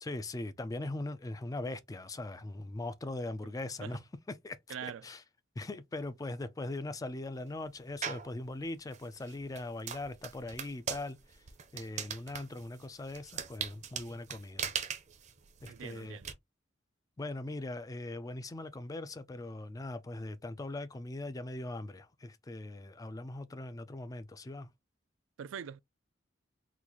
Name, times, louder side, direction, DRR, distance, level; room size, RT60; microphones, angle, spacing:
voice 1, 0.0-4.0 4.3-5.2 5.6-11.2 11.7-14.7 15.6-16.2 17.2-24.7, left 2 dB, 20° left, 0.4 m, -40 dB
voice 2, 4.7-5.0 15.7-16.3 25.4-25.8, right 8 dB, 90° right, 0.4 m, -43 dB
sound 1, 8.0-8.3 8.9-16.3, right 7 dB, 40° right, 0.5 m, -40 dB
3.9 x 2.4 x 2.9 m
head